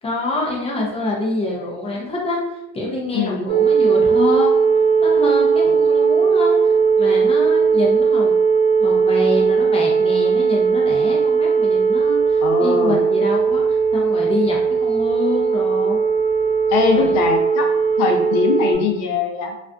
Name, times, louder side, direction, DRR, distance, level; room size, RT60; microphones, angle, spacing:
voice 1, 0.0-2.4 2.7-4.6 5.0-6.7 7.0-8.3 8.8-16.0 16.9-17.2, left 2 dB, 15° left, -3 dB, 0.4 m, -26 dB
voice 2, 3.1-3.5 12.4-13.0 16.7-17.7 18.0-19.6, left 5 dB, 80° left, 3 dB, 0.6 m, -21 dB
sound 1, 3.5-18.7, right 5 dB, 65° right, 0.9 m, -17 dB
2.4 x 2.4 x 2.2 m, 0.91 s
cardioid pair, 135°, 40 cm